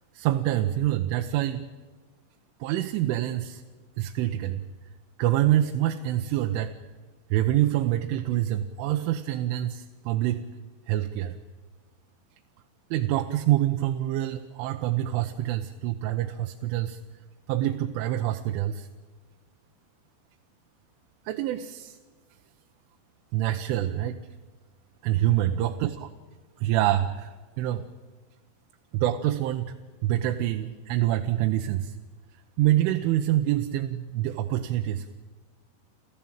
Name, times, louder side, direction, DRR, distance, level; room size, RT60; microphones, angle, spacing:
voice 1, 0.1-1.7 2.6-3.6 4.0-4.6 5.2-6.7 7.3-10.4 10.9-11.4 12.9-17.0 17.5-18.9 21.3-22.0 23.3-24.2 25.0-26.1 26.6-27.9 28.9-29.7 30.0-32.0 32.6-35.2, right 13 dB, 80° right, 6 dB, 3.3 m, -26 dB
29.0 x 14.0 x 8.9 m, 1.4 s
omnidirectional pair, 5.7 m